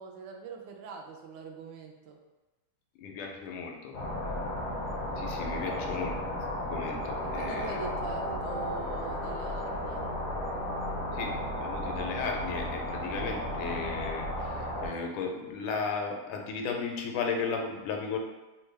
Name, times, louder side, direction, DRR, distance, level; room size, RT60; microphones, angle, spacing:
voice 1, 0.0-2.2 5.4-6.0 7.3-10.0, right 4 dB, 80° right, 2 dB, 1.0 m, -43 dB
voice 2, 3.0-4.0 5.2-7.8 11.1-11.3 11.6-18.2, left 5 dB, 85° left, 2 dB, 1.5 m, -35 dB
sound 1, 3.9-14.9, left 1 dB, 60° left, 0.7 m, -34 dB
3.5 x 2.2 x 3.2 m, 1.1 s
omnidirectional pair, 2.4 m